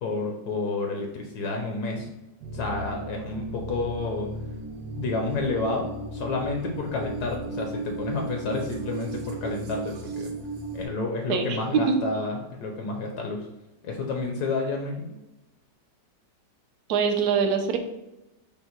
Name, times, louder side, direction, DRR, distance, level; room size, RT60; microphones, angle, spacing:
voice 1, 0.0-2.1 2.5-4.3 5.0-10.3 10.7-13.5 13.8-15.0, left 3 dB, 70° left, 1 dB, 1.2 m, -30 dB
sound 1, 2.4-10.9, right 2 dB, 90° right, 1.4 m, -35 dB
voice 2, 11.3-12.0 16.9-17.8, right 6 dB, 70° right, 5 dB, 1.0 m, -23 dB
5.4 x 2.1 x 4.4 m, 0.95 s
omnidirectional pair, 1.9 m